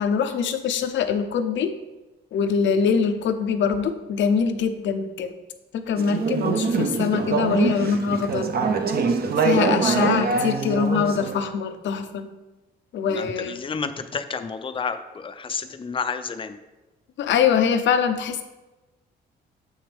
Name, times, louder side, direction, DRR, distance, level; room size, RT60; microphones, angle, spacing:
voice 1, 0.0-1.7 2.3-5.3 5.7-8.5 9.4-12.3 12.9-13.6 17.2-18.4, left 6 dB, 70° left, 9 dB, 0.7 m, -23 dB
Conversation / Chatter, 6.0-11.3, right 4 dB, 50° right, 0.8 m, -24 dB
voice 2, 13.1-16.6, left 5 dB, 25° left, 9 dB, 0.5 m, -30 dB
7.2 x 6.3 x 3.4 m, 1.1 s
cardioid pair, 90°, 20 cm